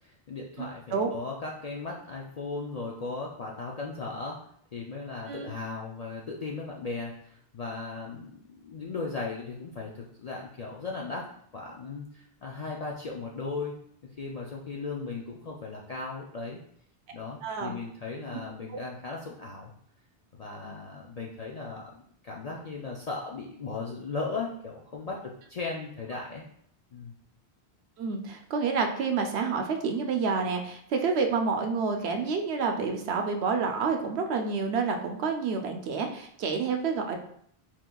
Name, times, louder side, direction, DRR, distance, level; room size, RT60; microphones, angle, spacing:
voice 1, 0.0-4.4 4.7-11.3 11.5-13.7 14.2-16.6 17.1-19.7 20.3-21.9 22.2-26.4 26.9-27.2, left 4 dB, 50° left, -2 dB, 0.5 m, -37 dB
voice 2, 17.4-17.8 18.7-18.8 20.7-20.8 28.0-37.2, right 5 dB, 75° right, 4 dB, 0.9 m, -29 dB
4.5 x 3.6 x 2.3 m, 0.66 s
omnidirectional pair, 1.1 m